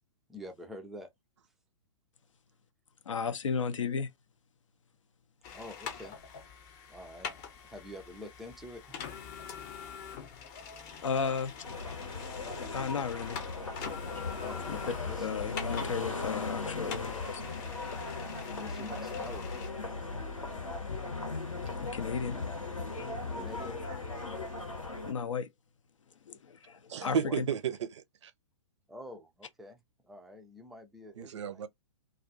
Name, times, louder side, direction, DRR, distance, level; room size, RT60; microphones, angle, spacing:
voice 1, 0.3-1.1 5.5-6.2 6.9-7.3 7.6-9.0 14.4-15.3 18.6-19.5 23.3-23.8 27.0-27.4 28.9-31.6, left 1 dB, ahead, 0.3 m, -47 dB
voice 2, 3.1-4.1 11.0-11.5 12.6-13.4 14.7-14.8 15.2-17.3 21.8-22.4 25.0-25.5 26.3-26.4 26.7-27.2, left 6 dB, 70° left, 0.5 m, -34 dB
sound 1, 5.4-19.7, left 7 dB, 35° left, 0.7 m, -45 dB
sound 2, 11.6-25.1, left 3 dB, 90° left, 1.1 m, -37 dB
voice 3, 26.9-28.3 31.2-31.7, right 7 dB, 65° right, 0.5 m, -33 dB
2.4 x 2.4 x 2.5 m
figure-of-eight pair, 120°, 17 cm